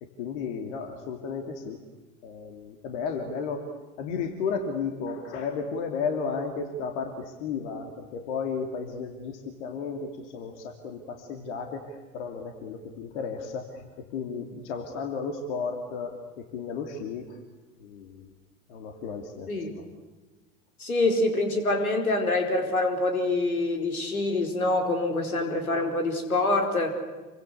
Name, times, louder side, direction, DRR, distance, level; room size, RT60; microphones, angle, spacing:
voice 1, 0.0-1.8 2.2-3.7 4.0-13.9 14.1-17.4 17.8-18.3 18.7-19.5 19.8-19.9, left 5 dB, 55° left, 4 dB, 3.1 m, -33 dB
voice 2, 20.8-27.0, left 2 dB, 75° left, 4 dB, 4.8 m, -25 dB
28.5 x 24.0 x 8.1 m, 1.2 s
figure-of-eight pair, 85°, 43 cm